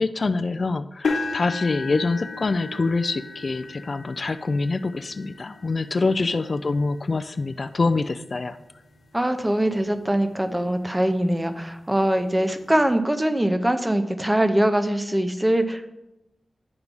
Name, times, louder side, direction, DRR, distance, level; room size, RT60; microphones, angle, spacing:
voice 1, 0.0-8.6, left 3 dB, 45° left, 11 dB, 0.3 m, -25 dB
sound 1, 1.0-9.1 9.7-9.9 10.4-10.5 11.9-12.0, left 3 dB, 80° left, 1.0 m, -35 dB
voice 2, 9.1-15.9, right 1 dB, 10° right, 8 dB, 0.7 m, -22 dB
9.7 x 4.7 x 5.3 m, 0.91 s
wide cardioid pair, 110°, 0 cm